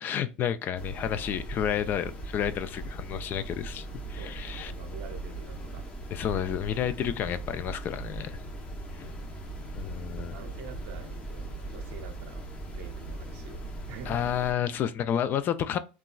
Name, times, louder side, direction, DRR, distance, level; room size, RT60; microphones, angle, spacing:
voice 1, 0.0-4.7 6.1-8.4 8.9-9.1 9.7-10.4 14.1-15.8, left 9 dB, 40° left, 0.4 m, -30 dB
sound 1, 0.7-14.5, right 2 dB, 25° left, 0.7 m, -39 dB
voice 2, 4.2-5.9 8.7-9.2 10.2-12.4 12.7-14.4, right 5 dB, 65° right, 0.7 m, -47 dB
3.0 x 2.3 x 2.2 m
hypercardioid pair, 100°, 5 cm